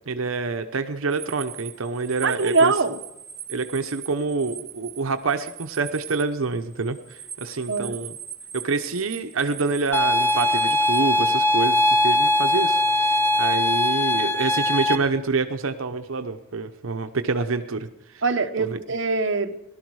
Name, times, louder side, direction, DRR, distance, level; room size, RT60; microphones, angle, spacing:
voice 1, 0.1-2.7 3.5-8.1 8.5-18.2 18.6-18.8, right 4 dB, 85° right, 0.8 m, -27 dB
sound 1, 1.1-11.0, right 8 dB, 25° right, 1.6 m, -40 dB
voice 2, 2.2-3.0 7.7-8.0 18.2-19.6, right 4 dB, 60° right, 1.0 m, -23 dB
sound 2, 9.9-15.0, left 1 dB, 10° left, 0.9 m, -21 dB
17.5 x 12.5 x 4.8 m
head